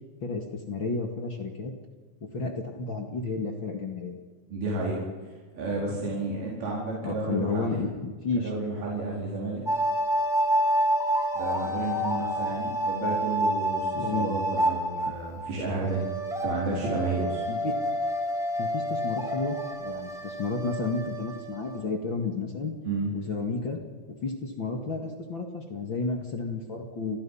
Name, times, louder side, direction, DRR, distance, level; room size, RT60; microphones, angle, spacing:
voice 1, 0.2-1.7 2.3-4.2 7.0-8.5 13.9-14.3 17.5-17.8 18.6-22.7 23.1-23.8 24.2-27.2, left 4 dB, 40° left, 3 dB, 2.3 m, -32 dB
voice 2, 4.5-7.8 8.4-9.6 11.3-16.0 16.4-17.4 22.9-23.1, right 3 dB, 85° right, -4 dB, 6.4 m, -31 dB
sound 1, 9.7-15.5 15.8-21.8, equal, ahead, 3.0 m, -28 dB
29.0 x 21.0 x 5.8 m, 1.4 s
omnidirectional pair, 4.2 m